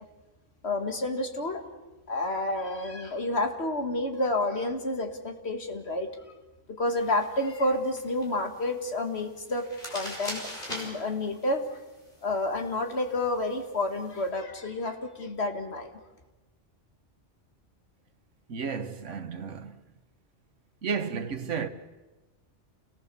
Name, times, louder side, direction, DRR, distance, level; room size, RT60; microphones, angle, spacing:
voice 1, 0.6-1.7 2.1-6.2 6.7-11.7 12.2-15.9, left 2 dB, 60° left, 2.3 m, -30 dB
sound 1, 6.9-14.3, equal, 45° left, 5.5 m, -44 dB
voice 2, 18.5-19.8 20.8-21.7, right 6 dB, 85° right, 1.6 m, -32 dB
28.5 x 18.5 x 7.0 m
omnidirectional pair, 1.2 m